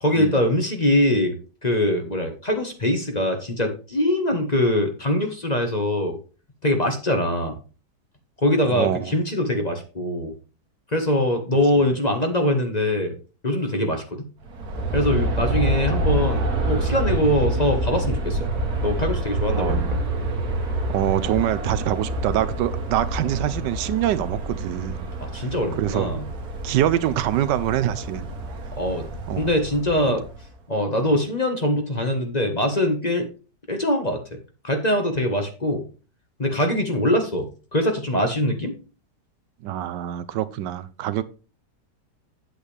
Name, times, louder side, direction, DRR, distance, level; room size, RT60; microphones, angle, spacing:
voice 1, 0.0-1.3 1.6-6.2 6.6-7.5 8.4-10.3 10.9-13.1 13.4-14.3 14.9-18.5 18.8-19.8 25.2-26.2 28.8-29.0 29.4-30.2 30.7-33.3 33.7-34.2 34.6-35.8 36.4-38.7, left 1 dB, 25° left, 4 dB, 1.3 m, -23 dB
voice 2, 8.7-9.1 15.3-15.5 19.5-20.0 20.9-25.1 25.4-25.5 25.8-26.1 26.6-28.3 29.3-29.5 30.1-30.2 39.6-41.2, right 12 dB, 80° right, 14 dB, 1.3 m, -25 dB
Aircraft, 14.4-30.5, right 2 dB, 65° right, 1.7 m, -27 dB
8.8 x 8.2 x 3.3 m, 0.34 s
omnidirectional pair, 1.8 m